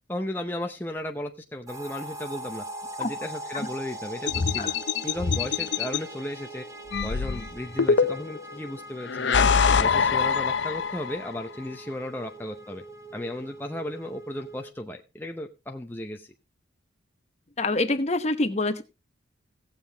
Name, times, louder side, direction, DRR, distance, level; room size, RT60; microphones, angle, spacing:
voice 1, 0.1-2.6 3.0-4.7 5.0-6.6 7.0-9.5 9.8-12.8 13.1-16.3, left 1 dB, 10° left, 3 dB, 0.7 m, -35 dB
sound 1, 1.7-14.7, right 1 dB, 15° right, 1.0 m, -42 dB
sound 2, 4.3-6.0 6.9-8.4 9.1-11.2, left 5 dB, 65° left, 0.7 m, -24 dB
voice 2, 17.6-18.8, left 2 dB, 35° left, 9 dB, 0.9 m, -26 dB
17.5 x 7.3 x 3.4 m, 0.28 s
head